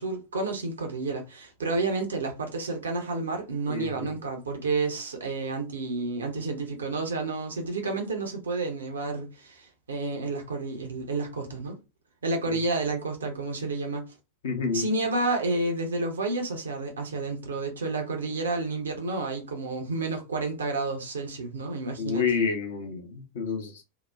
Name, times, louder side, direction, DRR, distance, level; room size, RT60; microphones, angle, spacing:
voice 1, 0.0-11.8 12.2-14.0 14.7-22.2, right 3 dB, 70° right, 0.6 m, -30 dB
voice 2, 3.7-4.1 12.5-12.6 14.4-14.8 22.0-23.8, left 5 dB, 60° left, 0.8 m, -29 dB
2.8 x 2.1 x 2.3 m
figure-of-eight pair, 90°, 0 cm